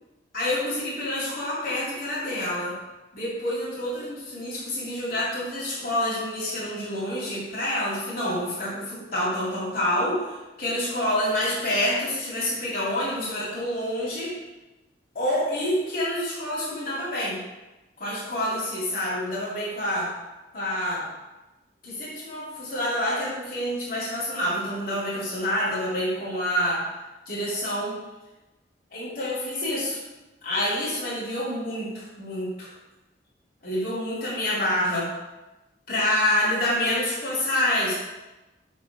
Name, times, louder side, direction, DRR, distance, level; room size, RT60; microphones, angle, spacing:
voice 1, 0.3-2.7 3.1-10.2 10.6-14.3 15.1-17.4 18.0-20.1 20.5-21.0 21.8-26.8 27.3-28.0 28.9-30.0 30.4-32.7 33.6-35.1 35.9-37.9, left 1 dB, 55° left, -8 dB, 2.8 m, -27 dB
5.8 x 5.2 x 6.1 m, 1.1 s
head